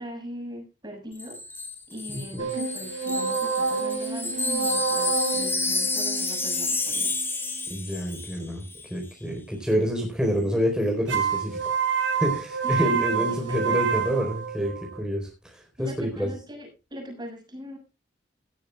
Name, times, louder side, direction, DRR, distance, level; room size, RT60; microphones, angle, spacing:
voice 1, 0.0-1.4 1.9-7.3 12.6-13.9 15.8-17.8, equal, 25° right, 4 dB, 6.8 m, -40 dB
Wind chime, 1.2-8.4 8.7-8.9, left 3 dB, 10° left, 3.6 m, -30 dB
voice 2, 2.1-2.5 7.7-11.7 12.1-16.3, equal, 5° right, 1 dB, 4.3 m, -28 dB
sound 1, 2.4-7.7 11.1-15.0, right 5 dB, 70° right, 3.9 m, -28 dB
17.5 x 14.0 x 2.4 m, 0.29 s
head